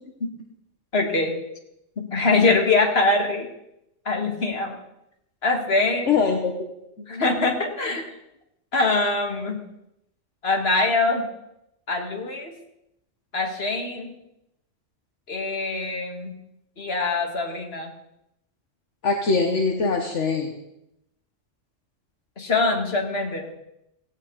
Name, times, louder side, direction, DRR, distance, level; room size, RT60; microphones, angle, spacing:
voice 1, 0.9-1.4 2.0-3.5 4.1-4.8 5.4-6.1 7.1-8.1 8.7-9.6 10.4-11.3 11.9-12.5 13.3-14.1 15.3-16.4 16.8-17.9 22.4-23.5, left 3 dB, 55° left, 2 dB, 2.3 m, -23 dB
voice 2, 6.1-6.7 19.0-20.5, left 4 dB, 70° left, 2 dB, 1.7 m, -22 dB
17.0 x 16.5 x 4.0 m, 0.84 s
omnidirectional pair, 1.3 m